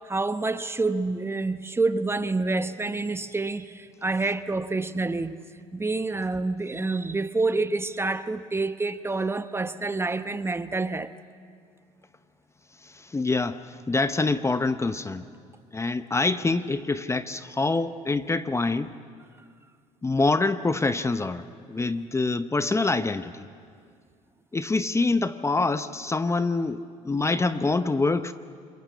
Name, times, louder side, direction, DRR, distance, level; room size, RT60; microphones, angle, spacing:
voice 1, 0.0-5.4 5.7-11.1, right 3 dB, 15° right, 0.9 m, -27 dB
voice 2, 12.8-15.3 15.7-18.9 20.0-23.5 24.5-28.3, left 3 dB, 20° left, 0.8 m, -26 dB
27.5 x 22.5 x 8.2 m
supercardioid pair, 80°, 16 cm